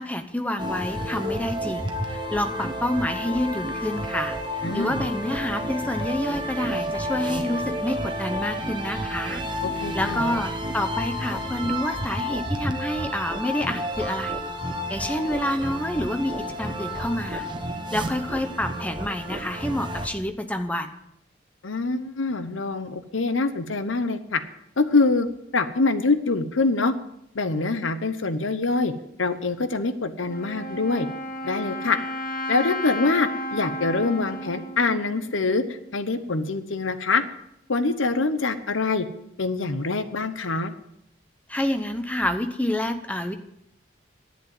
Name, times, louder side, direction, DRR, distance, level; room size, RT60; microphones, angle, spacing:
voice 1, 0.0-4.4 4.7-9.4 9.9-14.4 14.9-17.5 17.9-20.9 41.5-43.3, left 1 dB, 5° left, 8 dB, 0.8 m, -28 dB
sound 1, 0.6-20.1, equal, 25° right, 1.1 m, -31 dB
voice 2, 4.6-5.0 9.8-10.2 21.6-24.4 24.8-25.3 25.5-26.9 27.3-28.9 29.2-31.1 31.4-32.0 32.5-37.2 37.7-39.1 39.4-40.7, left 3 dB, 90° left, 11 dB, 1.0 m, -24 dB
Wind instrument woodwind instrument, 30.3-36.0, left 1 dB, 45° left, 1.4 m, -33 dB
11.0 x 8.4 x 7.7 m, 0.78 s
head